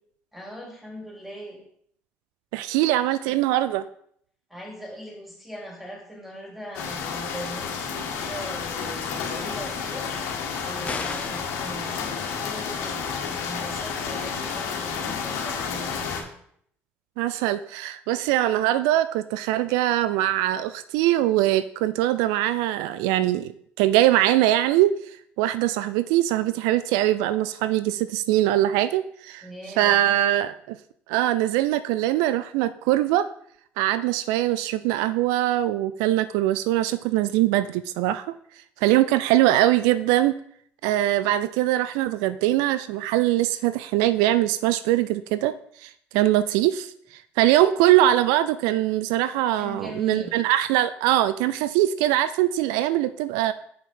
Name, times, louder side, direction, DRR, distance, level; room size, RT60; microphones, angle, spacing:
voice 1, 0.3-1.6 4.5-16.3 29.4-30.0 49.6-50.4, equal, 5° right, -1 dB, 3.6 m, -40 dB
voice 2, 2.5-3.9 17.2-24.9 25.4-29.5 29.8-30.8 31.1-33.3 33.8-38.3 38.8-40.3 40.8-45.5 45.8-53.5, right 14 dB, 80° right, 14 dB, 0.3 m, -22 dB
sound 1, 6.7-16.2, left 6 dB, 75° left, 1.7 m, -31 dB
sound 2, 10.9-11.6, left 3 dB, 20° left, 1.0 m, -34 dB
7.1 x 5.8 x 4.7 m, 0.66 s
hypercardioid pair, 65°, 6 cm